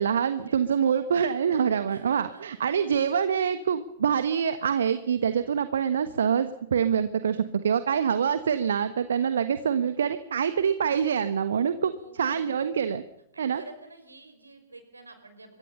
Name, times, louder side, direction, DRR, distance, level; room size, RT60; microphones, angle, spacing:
voice 1, 0.0-11.9 12.2-13.0 13.4-13.6, right 7 dB, 65° right, 11 dB, 1.3 m, -25 dB
voice 2, 1.9-2.4 11.6-12.8 13.3-15.6, right 2 dB, 80° right, 7 dB, 5.6 m, -49 dB
26.5 x 23.0 x 5.6 m, 0.79 s
figure-of-eight pair, 105°, 0 cm